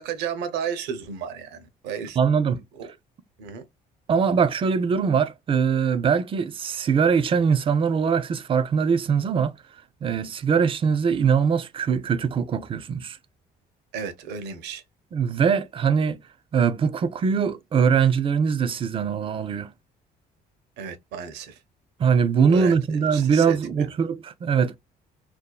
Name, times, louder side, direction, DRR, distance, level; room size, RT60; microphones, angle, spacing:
voice 1, 0.0-2.2 2.8-2.9 3.4-3.6 13.9-14.8 20.8-21.6 22.5-22.8 23.1-23.9, right 7 dB, 85° right, 0.7 m, -33 dB
voice 2, 2.2-2.6 4.1-9.5 10.0-13.2 15.1-16.2 16.5-19.7 22.0-24.8, right 6 dB, 30° right, 0.4 m, -22 dB
2.6 x 2.3 x 2.2 m
cardioid pair, 110°, 17 cm